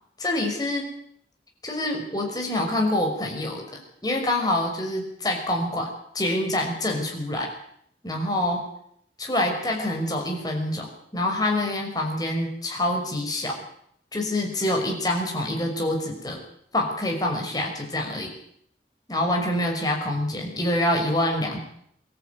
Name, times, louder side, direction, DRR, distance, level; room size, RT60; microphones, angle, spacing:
voice 1, 0.2-0.9 1.6-5.9 6.1-7.5 8.0-8.6 9.2-13.5 14.1-16.4 16.7-18.3 19.1-21.6, left 1 dB, 20° left, 1 dB, 5.9 m, -26 dB
24.5 x 14.0 x 9.6 m, 0.70 s
head